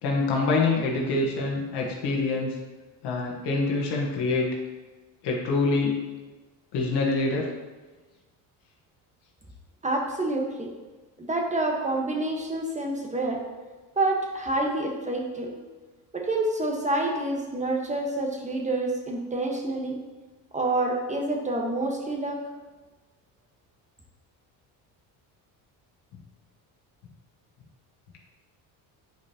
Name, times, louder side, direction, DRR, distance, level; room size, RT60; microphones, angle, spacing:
voice 1, 0.0-2.6 3.0-4.5 5.2-6.0 6.7-7.5, left 3 dB, 65° left, -2 dB, 1.5 m, -25 dB
voice 2, 9.8-10.7 11.2-13.4 14.0-15.5 16.1-20.0 20.5-22.4, right 2 dB, 15° right, 1 dB, 1.3 m, -27 dB
9.2 x 5.1 x 2.9 m, 1.3 s
supercardioid pair, 90°, 44 cm